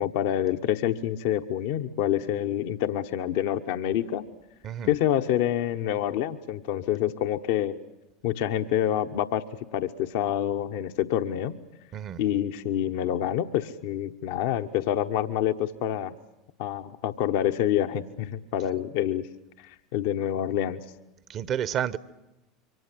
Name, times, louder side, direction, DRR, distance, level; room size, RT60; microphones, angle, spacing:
voice 1, 0.0-4.3 4.8-7.8 8.2-9.4 9.7-11.6 12.2-16.1 16.6-19.3 19.6-20.8, left 11 dB, 60° left, 1.0 m, -27 dB
voice 2, 21.3-22.0, right 9 dB, 40° right, 1.1 m, -30 dB
26.5 x 24.5 x 7.6 m
figure-of-eight pair, 75°, 0 cm